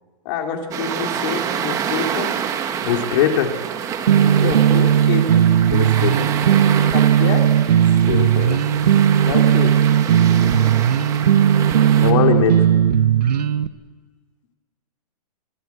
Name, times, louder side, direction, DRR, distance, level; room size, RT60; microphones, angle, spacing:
voice 1, 0.2-2.3 4.1-5.4 6.9-7.5 9.2-9.8, left 6 dB, 35° left, 3 dB, 2.9 m, -27 dB
sound 1, 0.7-12.1, right 8 dB, 15° right, 1.2 m, -27 dB
voice 2, 2.8-3.6 5.7-6.3 8.1-8.9 12.0-12.7, left 8 dB, 50° left, 4 dB, 2.7 m, -21 dB
sound 2, 4.1-13.7, right 9 dB, 85° right, 1.1 m, -16 dB
24.5 x 16.0 x 8.3 m, 1.5 s
hypercardioid pair, 165°, 20 cm